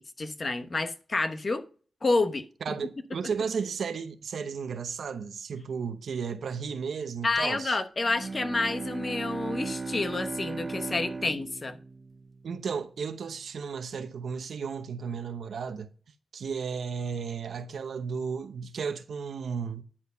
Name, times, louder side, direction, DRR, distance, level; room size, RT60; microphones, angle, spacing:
voice 1, 0.0-1.6 2.0-2.5 7.2-11.8, left 3 dB, 40° left, 1.0 m, -29 dB
voice 2, 2.6-7.8 12.4-15.9 16.3-19.8, right 6 dB, 80° right, 0.8 m, -34 dB
Bowed string instrument, 8.0-12.9, right 3 dB, 35° right, 0.6 m, -37 dB
10.0 x 4.4 x 5.5 m
wide cardioid pair, 85°, 0 cm